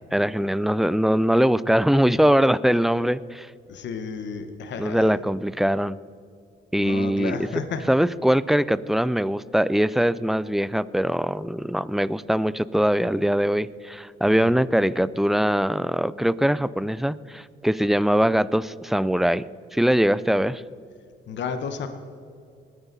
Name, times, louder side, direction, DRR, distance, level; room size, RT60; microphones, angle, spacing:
voice 1, 0.1-3.5 4.8-6.0 6.7-7.4 7.9-19.4 19.7-20.6, equal, ahead, 18 dB, 0.3 m, -22 dB
voice 2, 3.7-5.1 6.8-7.8 14.4-14.5 21.3-21.9, left 6 dB, 65° left, 8 dB, 1.2 m, -32 dB
20.5 x 9.7 x 4.1 m, 2.3 s
cardioid pair, 90°, 20 cm